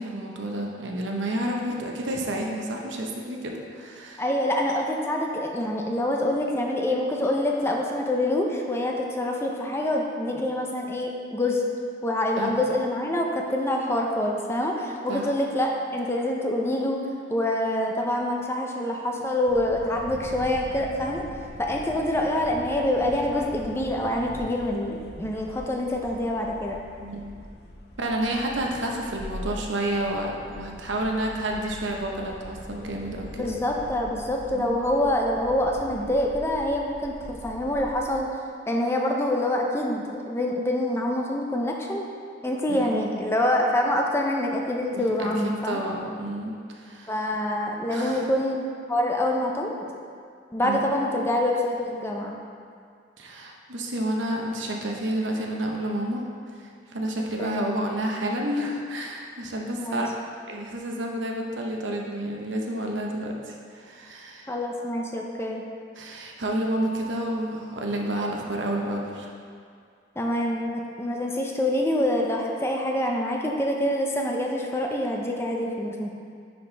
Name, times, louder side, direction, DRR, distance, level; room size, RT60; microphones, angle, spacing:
voice 1, 0.0-4.2 12.3-12.6 15.1-15.3 27.0-27.3 28.0-33.5 34.5-34.7 42.7-43.0 44.9-45.3 45.6-47.1 47.9-48.3 50.6-50.8 53.2-56.2 56.9-60.1 60.5-64.5 66.0-69.3, right 1 dB, 80° right, 0 dB, 0.9 m, -30 dB
voice 2, 4.2-11.6 12.0-17.0 17.3-21.2 21.6-26.8 33.4-38.3 38.7-42.0 42.4-45.8 47.1-49.9 50.5-52.4 57.4-57.6 59.7-60.0 64.5-65.7 70.2-76.1, left 1 dB, 15° left, 0 dB, 0.5 m, -26 dB
sound 1, 19.5-38.2, equal, 55° left, 0.8 m, -42 dB
10.0 x 4.2 x 3.3 m, 2.2 s
head